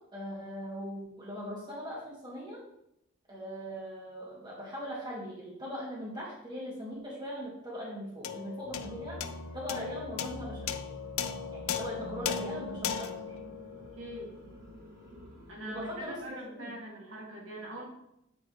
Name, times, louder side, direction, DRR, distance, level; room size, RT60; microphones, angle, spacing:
voice 1, 0.1-2.6 3.3-9.2 9.5-10.8 11.5-13.1 15.7-16.7, equal, 20° right, -5 dB, 2.3 m, -40 dB
sound 1, 8.2-14.8, left 7 dB, 85° left, 0.5 m, -38 dB
sound 2, 8.6-16.3, equal, 40° right, 2.1 m, -48 dB
voice 2, 14.0-14.3 15.5-17.9, right 1 dB, 75° right, -3 dB, 2.4 m, -42 dB
8.9 x 4.2 x 4.8 m, 0.80 s
head